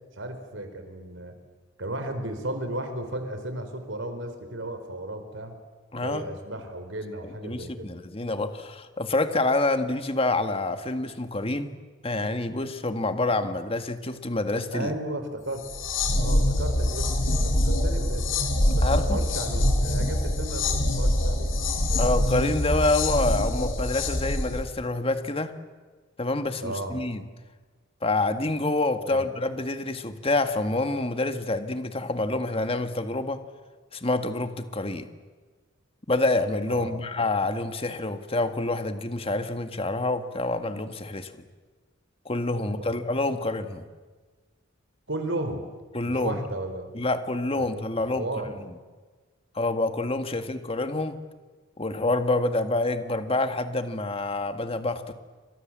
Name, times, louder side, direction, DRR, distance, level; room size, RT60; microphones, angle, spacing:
voice 1, 0.1-1.4 1.8-5.6 5.9-8.0 14.7-15.6 16.2-18.3 18.7-21.5 26.6-27.0 29.0-29.3 36.7-37.0 42.6-42.9 45.1-45.6 46.0-46.9 47.6-47.7 48.0-48.5 50.3-50.4, right 1 dB, 75° right, 7 dB, 4.6 m, -34 dB
voice 2, 5.9-6.2 7.2-11.7 12.0-14.9 18.8-19.2 22.0-25.5 26.2-27.2 28.0-33.4 33.9-35.1 36.1-41.3 42.3-43.8 45.9-46.4 46.9-48.5 49.6-51.2 51.8-55.1, left 2 dB, 30° left, 8 dB, 1.8 m, -27 dB
sound 1, 15.6-24.6, left 1 dB, 80° left, 4.4 m, -24 dB
29.5 x 25.5 x 7.6 m, 1.4 s
head